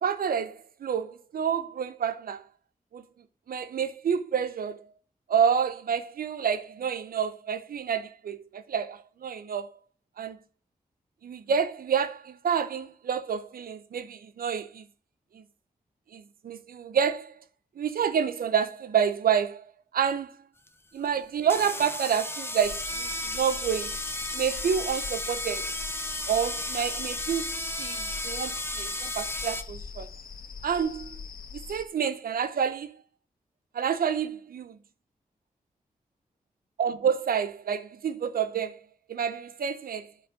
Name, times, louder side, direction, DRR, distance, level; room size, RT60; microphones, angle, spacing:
voice 1, 0.0-2.4 2.9-3.0 3.5-4.9 5.3-9.7 10.2-10.4 11.2-14.8 15.3-15.4 16.1-17.3 17.8-19.7 19.9-20.4 20.9-24.0 24.3-25.7 26.3-30.1 30.6-31.2 31.5-32.9 33.7-34.8 36.8-38.8 39.1-40.1, right 7 dB, 80° right, 0.9 m, -28 dB
sound 1, 20.7-20.8 21.4-29.6, left 1 dB, 15° left, 1.3 m, -34 dB
sound 2, 22.6-31.8, left 5 dB, 80° left, 1.9 m, -43 dB
10.0 x 7.2 x 5.1 m
cardioid pair, 50°, 15 cm